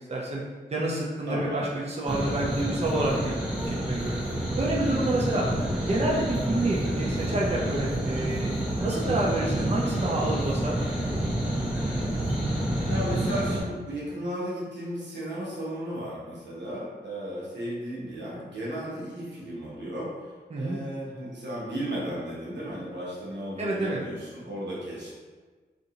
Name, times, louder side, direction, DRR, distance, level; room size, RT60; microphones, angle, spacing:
voice 1, 0.1-0.4 0.7-3.3 3.7-4.2 4.6-5.5 5.8-8.5 8.8-10.8 20.5-20.8 23.6-24.0, right 2 dB, 35° right, -4 dB, 0.7 m, -28 dB
voice 2, 1.3-1.7 5.5-5.7 12.9-25.1, equal, 85° right, -6 dB, 1.0 m, -35 dB
sound 1, 2.1-13.6, right 1 dB, 5° right, 0.8 m, -28 dB
2.7 x 2.6 x 3.9 m, 1.4 s
cardioid pair, 60°, 18 cm